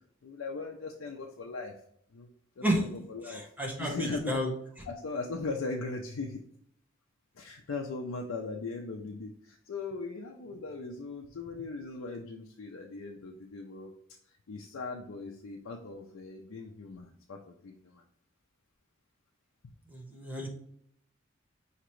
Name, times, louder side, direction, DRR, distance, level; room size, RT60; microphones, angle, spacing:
voice 1, 0.2-1.7 2.1-2.3 2.6-3.4 3.8-4.4 4.9-6.4 7.3-13.9 14.3-18.0 19.6-19.7, left 3 dB, 85° left, 1 dB, 0.5 m, -39 dB
voice 2, 3.3-4.5 19.9-20.5, equal, 10° right, -2 dB, 0.9 m, -31 dB
5.9 x 2.9 x 3.0 m, 0.69 s
head